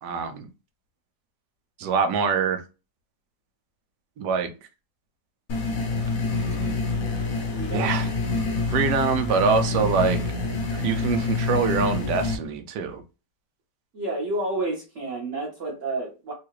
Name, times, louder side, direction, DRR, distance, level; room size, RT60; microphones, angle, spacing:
voice 1, 0.0-0.5 1.8-2.6 4.2-4.5 7.7-8.1 8.7-10.2 10.7-13.0, right 5 dB, 80° right, 7 dB, 1.3 m, -24 dB
sound 1, 5.5-12.4, left 3 dB, 65° left, 1.1 m, -26 dB
voice 2, 7.5-7.9 13.9-16.3, right 2 dB, 45° right, -5 dB, 1.4 m, -30 dB
3.7 x 2.4 x 3.0 m, 0.30 s
omnidirectional pair, 1.8 m